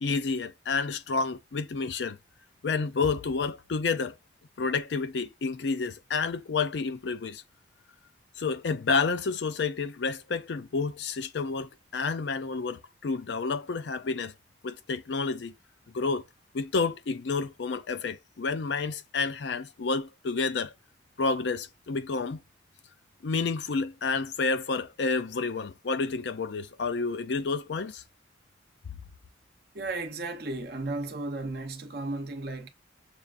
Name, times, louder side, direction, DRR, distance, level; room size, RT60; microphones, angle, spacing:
voice 1, 0.0-2.2 2.6-4.2 4.6-7.4 8.4-14.3 14.6-15.5 15.9-16.3 16.5-20.7 21.2-22.4 23.2-28.0, left 4 dB, 65° left, 0.5 m, -30 dB
voice 2, 29.7-32.7, right 2 dB, 55° right, 0.7 m, -34 dB
6.8 x 2.4 x 2.4 m
head